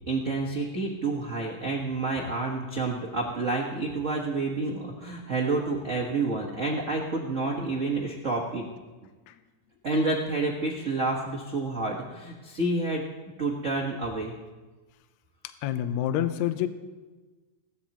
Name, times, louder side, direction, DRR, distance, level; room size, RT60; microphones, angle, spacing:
voice 1, 0.1-8.6 9.8-13.0 13.4-14.3, right 3 dB, 75° right, -2 dB, 0.7 m, -29 dB
voice 2, 15.4-16.7, left 11 dB, 75° left, 10 dB, 1.9 m, -28 dB
20.5 x 17.5 x 3.0 m, 1.3 s
omnidirectional pair, 3.7 m